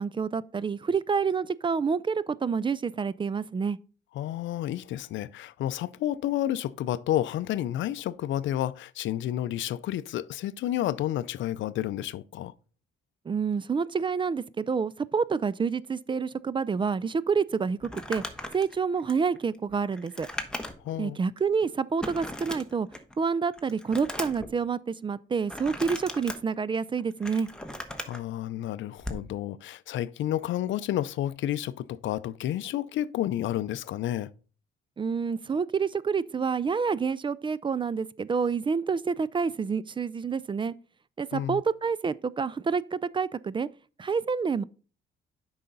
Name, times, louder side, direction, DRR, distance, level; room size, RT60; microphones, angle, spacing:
voice 1, 0.0-3.8 13.3-18.2 18.5-20.3 21.0-22.9 23.2-27.5 35.0-40.7 41.2-43.7 44.0-44.6, right 5 dB, 25° right, 0.3 m, -28 dB
voice 2, 4.1-12.5 20.8-21.2 28.0-34.3 41.3-41.6, left 12 dB, 75° left, 0.5 m, -30 dB
Crumpling crinkling, 17.8-21.0 21.4-21.5 22.0-23.1 23.5-24.5 25.5-26.4 27.0-28.2 29.0-29.3, left 1 dB, 5° left, 1.1 m, -37 dB
8.3 x 5.6 x 4.0 m
cardioid pair, 90°, 20 cm